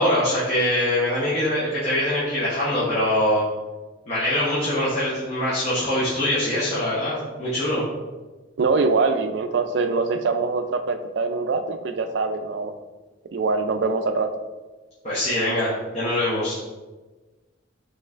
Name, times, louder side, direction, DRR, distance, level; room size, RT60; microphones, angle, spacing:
voice 1, 0.0-3.4 4.1-7.8 15.0-16.6, left 1 dB, 35° left, -9 dB, 0.8 m, -23 dB
voice 2, 8.6-12.7 13.3-14.3, right 4 dB, 60° right, 8 dB, 0.3 m, -23 dB
5.3 x 3.1 x 2.4 m, 1.2 s
head